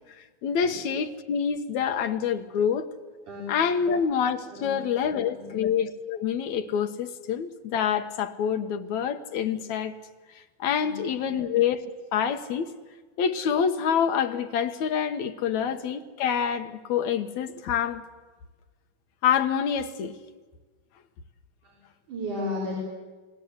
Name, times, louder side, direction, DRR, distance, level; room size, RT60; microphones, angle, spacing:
voice 1, 0.2-2.9 3.5-9.9 10.4-12.7 13.2-18.0 19.2-20.2, left 7 dB, 65° left, 2.2 m, -27 dB
voice 2, 22.1-22.8, left 1 dB, 65° right, 5.6 m, -34 dB
29.0 x 20.0 x 8.0 m
omnidirectional pair, 3.8 m